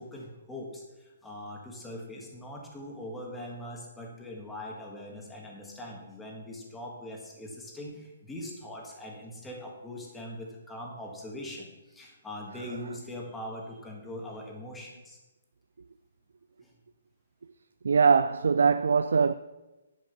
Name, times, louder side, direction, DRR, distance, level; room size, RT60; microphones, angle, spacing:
voice 1, 0.0-15.2 16.6-16.7, left 1 dB, 5° left, 1.6 m, -41 dB
voice 2, 17.8-19.3, right 5 dB, 85° right, 0.4 m, -22 dB
10.5 x 5.2 x 6.7 m
hypercardioid pair, 165°, 0 cm